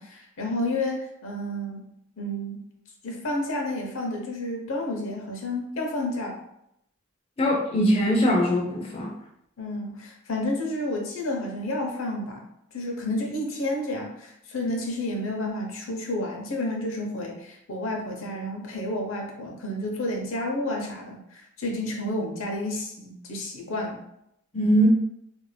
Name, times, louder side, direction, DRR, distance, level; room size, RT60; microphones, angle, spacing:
voice 1, 0.0-1.9 2.2-2.6 3.0-6.4 9.6-12.5 12.7-24.0, left 1 dB, 70° left, 1 dB, 0.8 m, -30 dB
voice 2, 7.4-9.1 24.5-24.9, equal, 30° left, -2 dB, 0.5 m, -21 dB
2.8 x 2.6 x 3.2 m, 0.78 s
head